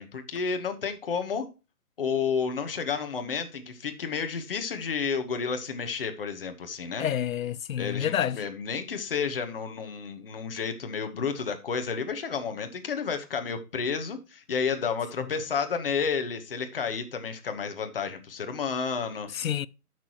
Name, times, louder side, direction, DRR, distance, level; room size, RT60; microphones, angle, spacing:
voice 1, 0.0-1.5 2.0-7.1 7.8-19.3, left 6 dB, 35° left, 1.2 m, -31 dB
voice 2, 7.0-8.4 19.3-19.7, left 10 dB, 65° left, 0.5 m, -28 dB
11.5 x 6.2 x 3.0 m
hypercardioid pair, 170°, 45 cm